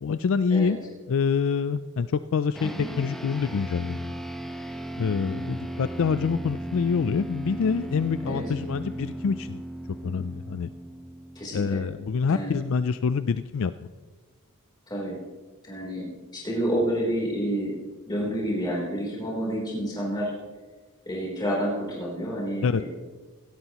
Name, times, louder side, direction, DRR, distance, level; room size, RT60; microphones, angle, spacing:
voice 1, 0.0-4.1 5.0-9.6 10.0-10.7 11.5-13.7 22.6-22.8, left 5 dB, 65° left, 13 dB, 0.4 m, -26 dB
sound 1, 2.5-12.2, right 1 dB, ahead, 0.9 m, -37 dB
voice 2, 11.4-11.8 12.3-12.6 14.9-15.2 15.6-16.1 16.3-17.7 18.1-20.3 21.1-22.9, equal, 20° left, -5 dB, 3.6 m, -29 dB
17.0 x 16.5 x 3.0 m, 1.3 s
head